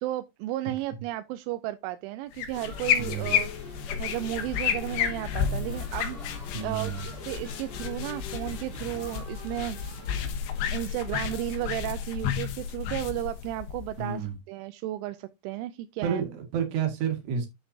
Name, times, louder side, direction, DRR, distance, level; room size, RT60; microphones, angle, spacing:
voice 1, 0.0-10.0 10.7-16.2, right 15 dB, 85° right, 3.0 m, -34 dB
sound 1, 2.3-14.3, left 8 dB, 75° left, 3.4 m, -31 dB
sound 2, 2.5-12.9, left 3 dB, 20° left, 2.2 m, -45 dB
voice 2, 3.0-3.4 6.5-7.0 14.0-14.4 16.0-17.5, right 7 dB, 65° right, 3.8 m, -30 dB
9.8 x 7.3 x 2.7 m
omnidirectional pair, 5.4 m